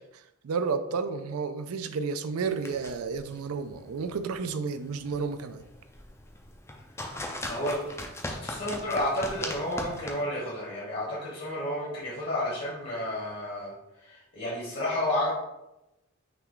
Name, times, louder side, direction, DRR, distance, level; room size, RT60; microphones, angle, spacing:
voice 1, 0.4-5.6, right 5 dB, 80° right, 10 dB, 0.4 m, -31 dB
sound 1, 2.4-10.1, left 1 dB, 10° left, 0.4 m, -40 dB
voice 2, 7.5-7.8 8.3-13.7 14.0-15.3, left 1 dB, 45° left, -6 dB, 1.2 m, -31 dB
5.7 x 2.3 x 3.8 m, 0.92 s
head